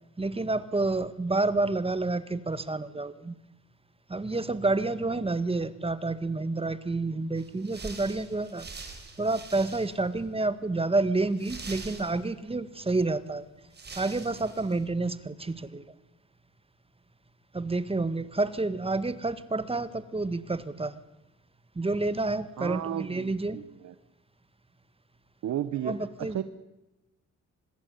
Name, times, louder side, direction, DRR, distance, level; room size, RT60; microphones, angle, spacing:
voice 1, 0.2-3.4 4.1-8.7 9.2-13.5 13.9-15.8 17.5-21.0 21.8-23.6 25.8-26.4, right 3 dB, 20° right, 13 dB, 1.7 m, -29 dB
sound 1, 7.4-10.1 10.5-10.6 11.3-12.5 13.3-13.4 13.7-14.8, right 4 dB, 35° right, 5.8 m, -44 dB
voice 2, 22.6-23.9 25.4-26.4, right 11 dB, 65° right, 11 dB, 1.4 m, -34 dB
25.5 x 20.5 x 9.7 m, 1.0 s
cardioid pair, 90°, 30 cm